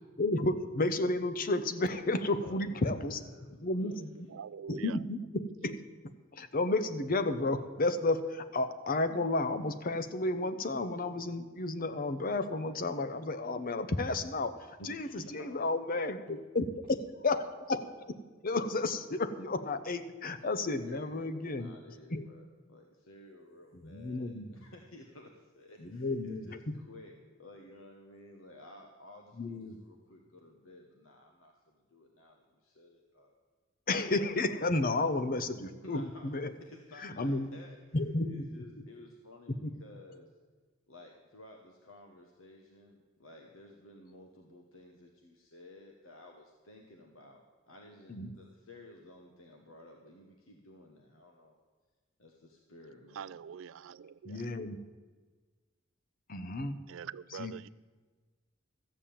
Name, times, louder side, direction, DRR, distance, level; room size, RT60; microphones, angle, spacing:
voice 1, 0.2-3.2 3.5-4.3 4.7-5.8 6.0-22.3 23.7-24.6 25.8-26.8 29.3-29.8 33.9-36.5 36.9-37.5 37.9-38.8 39.5-39.7 48.1-48.3 54.2-54.8 56.3-56.8 57.3-57.5, left 2 dB, 45° left, 0.8 m, -32 dB
voice 2, 2.0-4.1 14.8-15.6 20.8-27.1 27.4-33.3 35.8-36.3 36.6-37.8 38.3-40.3 40.9-51.6 52.2-53.3, left 1 dB, 85° left, 1.2 m, -54 dB
voice 3, 4.3-5.0 53.1-54.4 56.9-57.7, right 7 dB, 70° right, 0.4 m, -44 dB
13.5 x 7.5 x 8.6 m
head